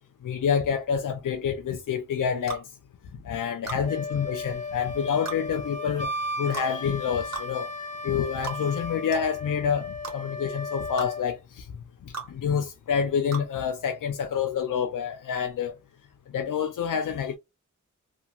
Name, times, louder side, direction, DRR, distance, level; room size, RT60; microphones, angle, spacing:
voice 1, 0.2-2.6 3.2-6.1 6.4-7.7 8.0-11.7 12.1-15.8 16.3-17.4, left 7 dB, 80° left, 0.5 m, -28 dB
sound 1, 2.5-2.7 3.7-3.8 5.3-5.4 6.5-6.7 7.3-7.5 8.4-8.6 9.1-9.3 10.0-10.2 11.0-11.1 12.1-12.3 13.3-13.5, right 5 dB, 60° right, 1.2 m, -35 dB
Wind instrument woodwind instrument, 3.8-11.3, left 2 dB, 25° left, 0.8 m, -35 dB
2.8 x 2.7 x 2.3 m
wide cardioid pair, 65°, 32 cm